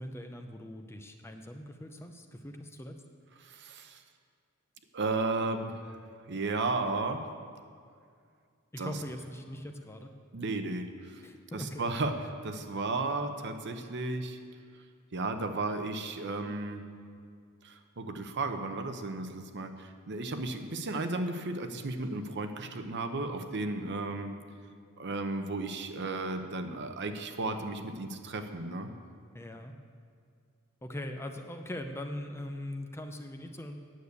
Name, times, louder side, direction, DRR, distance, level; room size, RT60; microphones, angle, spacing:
voice 1, 0.0-3.0 8.7-10.1 11.2-11.9 29.3-29.7 30.8-33.8, left 1 dB, 10° left, 5 dB, 0.5 m, -41 dB
voice 2, 3.4-4.0 4.9-7.3 8.8-8.9 10.3-11.3 11.5-14.4 15.1-16.8 17.6-24.4 25.0-28.9, right 3 dB, 55° right, 7 dB, 0.8 m, -34 dB
9.3 x 6.7 x 8.2 m, 2.2 s
head